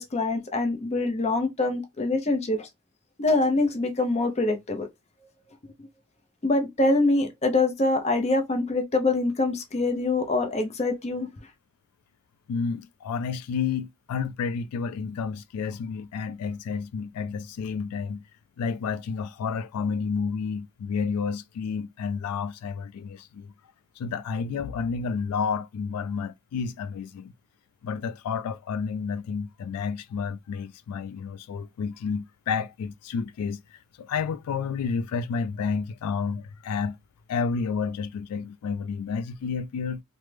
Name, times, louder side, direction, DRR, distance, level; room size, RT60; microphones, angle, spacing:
voice 1, 0.0-2.7 3.2-4.9 6.4-11.3, left 2 dB, 30° left, 0.5 m, -24 dB
voice 2, 12.5-18.2 18.6-23.5 24.0-27.3 27.8-37.0 37.3-40.0, left 5 dB, 85° left, 0.3 m, -30 dB
3.1 x 2.0 x 3.2 m
head